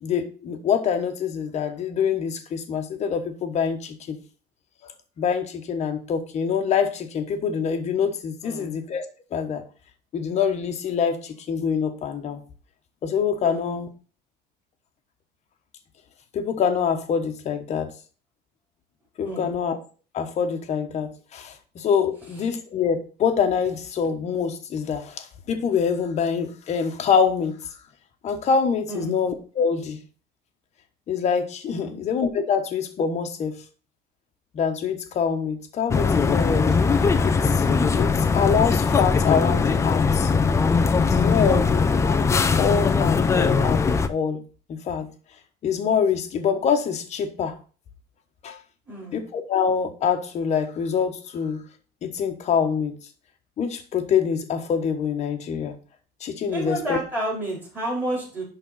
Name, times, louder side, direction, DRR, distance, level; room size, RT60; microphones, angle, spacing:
voice 1, 0.0-4.2 5.2-9.0 9.3-9.6 10.1-12.4 13.0-13.9 16.3-17.9 19.2-19.8 20.1-27.6 28.2-30.0 31.1-33.5 34.5-36.8 37.2-37.7 37.9-40.3 41.0-42.2 42.6-43.8 44.1-44.4 44.7-45.1 45.6-47.5 48.4-48.6 49.1-51.6 52.0-53.0 53.6-55.8 56.2-57.0, left 6 dB, 35° left, 6 dB, 1.2 m, -25 dB
voice 2, 8.4-8.8 13.4-13.7 19.2-19.5 28.9-29.2 31.8-32.1 41.4-41.8 48.9-49.2 56.5-58.4, right 1 dB, 10° right, -3 dB, 3.9 m, -31 dB
sound 1, 35.9-44.1, left 5 dB, 15° left, 0.4 m, -20 dB
11.0 x 3.9 x 5.6 m, 0.38 s
cardioid pair, 175°, 21 cm